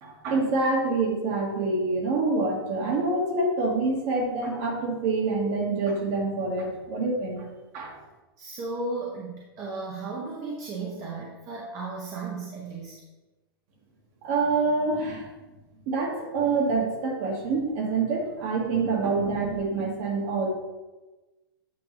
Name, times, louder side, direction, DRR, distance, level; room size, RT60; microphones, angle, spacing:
voice 1, 0.0-7.5 7.7-7.9 14.2-15.3 15.9-20.5, right 3 dB, 45° right, 0 dB, 1.5 m, -26 dB
voice 2, 8.4-12.9, right 3 dB, 25° right, -4 dB, 0.9 m, -35 dB
8.5 x 4.6 x 3.1 m, 1.1 s
supercardioid pair, 155°, 13 cm